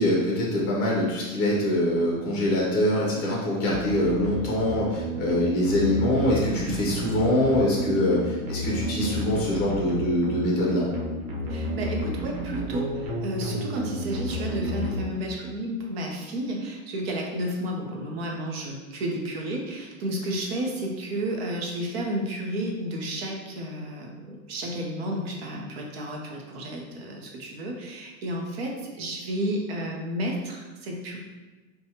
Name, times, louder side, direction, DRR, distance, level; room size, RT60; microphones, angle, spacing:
voice 1, 0.0-8.2 8.5-10.8, left 1 dB, 20° left, -4 dB, 0.7 m, -24 dB
sound 1, 3.7-15.6, equal, 90° right, 1.0 m, -32 dB
voice 2, 11.5-31.2, right 1 dB, 45° right, 0 dB, 0.7 m, -32 dB
4.3 x 2.3 x 2.8 m, 1.2 s
supercardioid pair, 175°, 42 cm